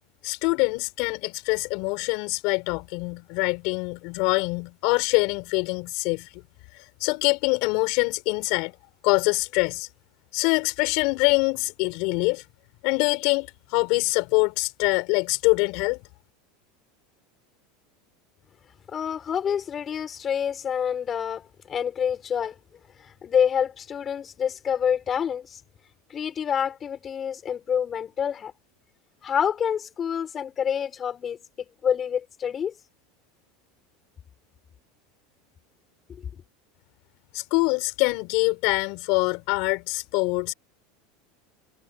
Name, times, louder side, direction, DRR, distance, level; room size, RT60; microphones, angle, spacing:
voice 1, 0.2-6.3 7.0-8.7 9.0-9.9 10.3-12.4 12.8-16.0 37.3-40.5, left 29 dB, 60° left, 6.9 m, -24 dB
voice 2, 18.9-22.6 23.0-25.6 26.1-28.5 29.2-31.4 31.8-32.7, left 8 dB, 30° left, 7.0 m, -27 dB
supercardioid pair, 130°, 0 cm